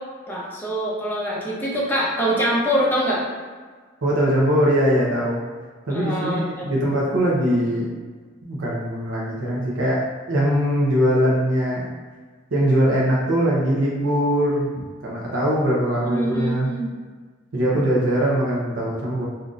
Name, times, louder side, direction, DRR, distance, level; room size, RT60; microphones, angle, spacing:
voice 1, 0.3-3.2 5.9-6.4 16.0-16.9, equal, 10° left, -6 dB, 0.7 m, -24 dB
voice 2, 4.0-5.4 5.8-7.9 8.4-11.9 12.5-16.7 17.5-19.3, equal, 75° right, -5 dB, 0.7 m, -21 dB
3.7 x 2.6 x 2.4 m, 1.5 s
head